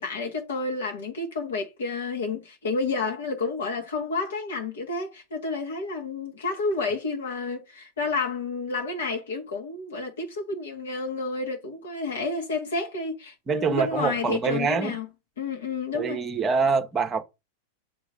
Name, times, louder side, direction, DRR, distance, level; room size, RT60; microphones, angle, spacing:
voice 1, 0.0-15.1 15.4-16.2, left 3 dB, 65° left, 1.5 m, -30 dB
voice 2, 13.5-14.9 15.9-17.2, right 5 dB, 20° right, 1.0 m, -25 dB
7.6 x 3.0 x 5.2 m
figure-of-eight pair, 90°, 0 cm